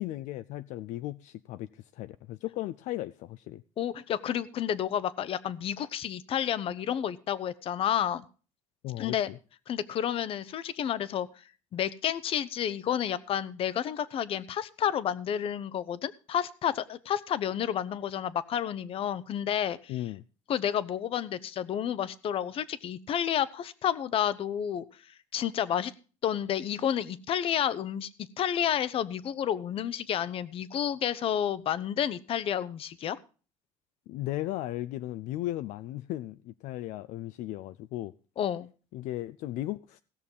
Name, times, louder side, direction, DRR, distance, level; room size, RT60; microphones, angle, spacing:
voice 1, 0.0-3.6 8.8-9.4 19.9-20.2 34.1-38.1 38.9-40.0, left 15 dB, 70° left, 0.5 m, -36 dB
voice 2, 3.8-8.3 9.0-9.3 9.7-11.3 11.7-19.9 20.5-24.8 25.3-25.9 26.2-28.1 28.4-33.2 38.4-38.7, left 9 dB, 45° left, 0.8 m, -30 dB
17.0 x 6.6 x 5.4 m
cardioid pair, 125°, 13 cm